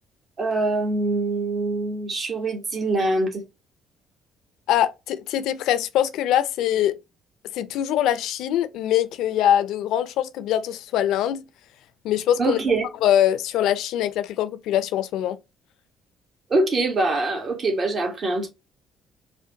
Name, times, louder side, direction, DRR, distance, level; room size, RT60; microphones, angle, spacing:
voice 1, 0.4-3.4 12.4-12.9 16.5-18.5, right 2 dB, 45° right, 1.2 m, -24 dB
voice 2, 4.7-7.0 7.5-11.5 12.0-12.6 13.0-15.4, left 11 dB, 75° left, 0.4 m, -23 dB
5.0 x 2.2 x 2.7 m
hypercardioid pair, 60°, 0 cm